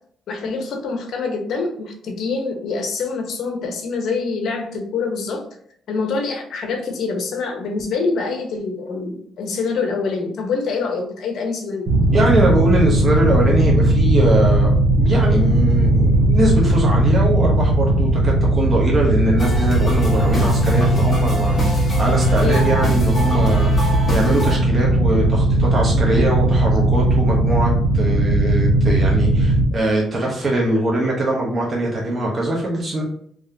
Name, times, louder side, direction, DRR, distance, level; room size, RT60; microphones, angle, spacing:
voice 1, 0.3-5.4 5.9-11.9 22.4-22.7, left 4 dB, 70° left, 3 dB, 1.0 m, -25 dB
sound 1, 11.9-29.6, right 1 dB, 60° right, 1.5 m, -17 dB
voice 2, 12.1-33.0, right 1 dB, 35° right, -3 dB, 1.1 m, -22 dB
sound 2, 19.4-24.6, right 1 dB, 30° left, 1.5 m, -27 dB
3.7 x 3.1 x 2.8 m, 0.63 s
cardioid pair, 90°, 0 cm